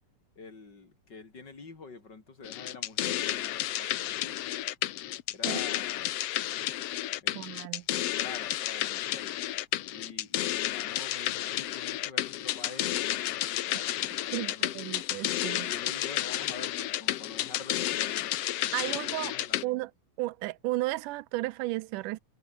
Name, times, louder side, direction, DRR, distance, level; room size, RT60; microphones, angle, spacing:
voice 1, 0.4-4.6 5.3-6.2 7.2-7.6 8.2-9.4 9.9-14.7 15.6-18.3 18.8-19.8, left 4 dB, 30° left, 4.5 m, -47 dB
sound 1, 2.4-19.6, left 13 dB, 70° left, 1.6 m, -31 dB
voice 2, 7.4-7.8 14.3-15.7 18.7-19.3 19.6-19.9 20.2-22.2, right 19 dB, 85° right, 2.2 m, -33 dB
omnidirectional pair, 3.7 m